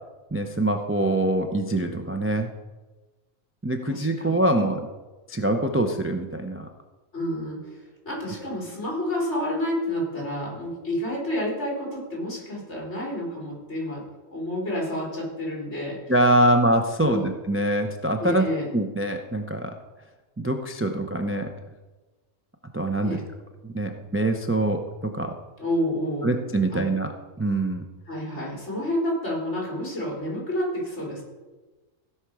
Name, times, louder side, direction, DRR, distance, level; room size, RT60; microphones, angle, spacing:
voice 1, 0.3-2.5 3.6-4.8 5.3-6.7 16.1-18.4 18.7-19.7 20.4-21.5 22.7-23.2 23.6-25.3 26.2-27.1 27.4-27.8, right 1 dB, 15° right, 4 dB, 0.4 m, -24 dB
voice 2, 3.9-4.4 7.1-7.8 8.1-14.0 14.3-16.0 17.0-17.3 18.2-18.7 23.0-23.2 25.6-26.4 26.7-26.8 28.1-31.2, left 1 dB, 60° left, -4 dB, 3.8 m, -29 dB
16.0 x 5.8 x 4.8 m, 1.2 s
omnidirectional pair, 1.3 m